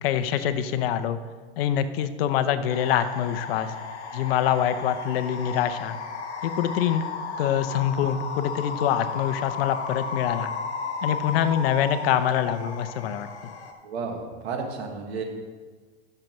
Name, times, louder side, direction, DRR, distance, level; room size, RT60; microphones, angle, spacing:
voice 1, 0.0-1.2 1.6-3.7 4.1-6.0 6.4-7.0 7.4-10.5 11.0-13.3, left 10 dB, 60° left, 11 dB, 0.7 m, -25 dB
sound 1, 2.7-13.7, left 5 dB, 80° left, 1.3 m, -34 dB
voice 2, 13.8-15.2, right 4 dB, 70° right, 3 dB, 1.7 m, -32 dB
13.0 x 6.7 x 3.1 m, 1.4 s
hypercardioid pair, 115°, 33 cm